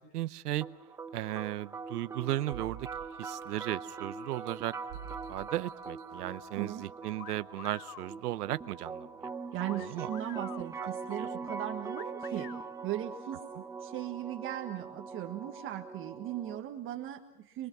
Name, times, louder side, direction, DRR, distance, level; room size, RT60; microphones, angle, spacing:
voice 1, 0.1-0.7 1.1-2.9 3.2-4.7 5.3-9.3 9.9-10.1, right 15 dB, 75° right, 15 dB, 0.9 m, -35 dB
sound 1, 0.6-16.6, right 4 dB, 5° right, 0.9 m, -42 dB
sound 2, 2.5-3.8 4.3-6.4 7.0-7.1, right 10 dB, 50° right, 1.7 m, -49 dB
sound 3, 7.2-8.1 9.7-10.7 11.9-12.7, left 14 dB, 75° left, 0.8 m, -48 dB
voice 2, 9.5-12.5 12.8-13.4 13.8-17.7, right 13 dB, 25° right, 4 dB, 1.4 m, -38 dB
26.5 x 22.5 x 6.1 m, 0.80 s
supercardioid pair, 145°, 47 cm